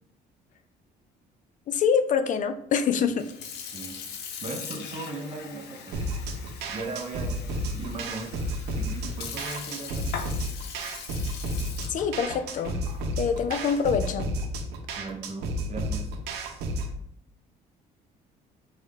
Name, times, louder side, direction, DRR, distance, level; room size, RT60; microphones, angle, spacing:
voice 1, 1.7-3.3 11.9-12.8 13.2-14.3, left 6 dB, 50° left, 10 dB, 0.4 m, -25 dB
Sink (filling or washing) / Fill (with liquid), 3.1-14.6, left 6 dB, 80° left, 0.7 m, -41 dB
voice 2, 4.4-6.0 6.7-8.3 8.7-10.1 14.9-16.2, right 3 dB, 40° right, 3 dB, 0.8 m, -38 dB
sound 1, 5.9-16.9, equal, 80° right, 0.7 m, -32 dB
4.8 x 2.6 x 3.5 m, 0.74 s
cardioid pair, 110°, 17 cm